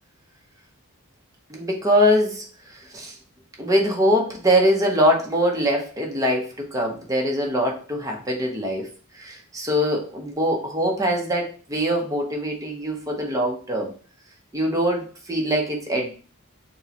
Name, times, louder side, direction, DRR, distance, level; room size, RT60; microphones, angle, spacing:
voice 1, 1.5-2.4 2.9-3.1 3.6-8.9 9.2-13.9 14.5-16.2, equal, 15° right, 0 dB, 0.8 m, -23 dB
6.4 x 2.2 x 2.8 m, 0.39 s
head